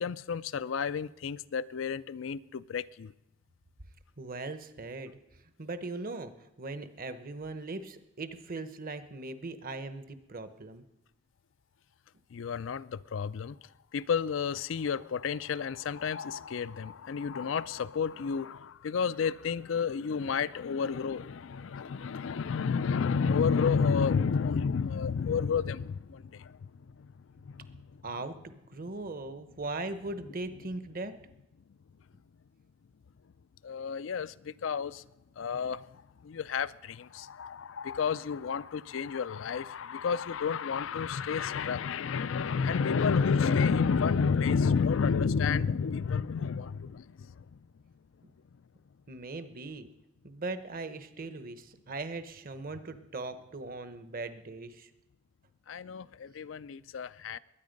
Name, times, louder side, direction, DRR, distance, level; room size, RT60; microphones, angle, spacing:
voice 1, 0.0-3.1 12.3-13.6 13.9-27.1 27.4-28.0 33.6-35.0 35.4-47.6 55.7-57.4, left 6 dB, 75° left, 0.4 m, -31 dB
voice 2, 4.2-5.2 5.6-10.8 28.0-31.1 49.1-49.9 50.2-54.9, right 2 dB, 45° right, 1.0 m, -39 dB
21.5 x 9.3 x 5.2 m
head